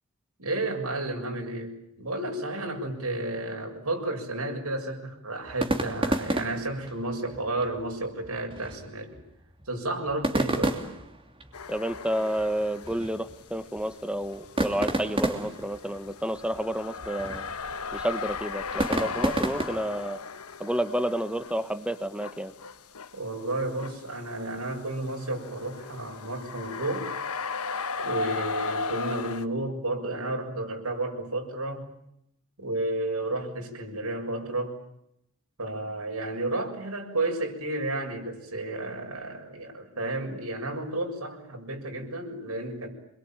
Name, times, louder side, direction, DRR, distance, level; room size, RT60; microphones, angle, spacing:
voice 1, 0.4-9.2 9.7-10.8 23.1-27.1 28.0-31.9 32.6-34.8 35.6-42.9, right 2 dB, 80° right, 2 dB, 7.0 m, -32 dB
sound 1, 5.5-20.1, right 1 dB, 25° right, 2.9 m, -32 dB
sound 2, 11.5-13.1 13.4-29.5, left 4 dB, 80° left, 1.4 m, -37 dB
voice 2, 11.7-17.5 17.9-20.2 20.6-22.5, right 1 dB, 5° right, 11 dB, 1.3 m, -30 dB
28.0 x 22.5 x 9.1 m, 0.78 s
head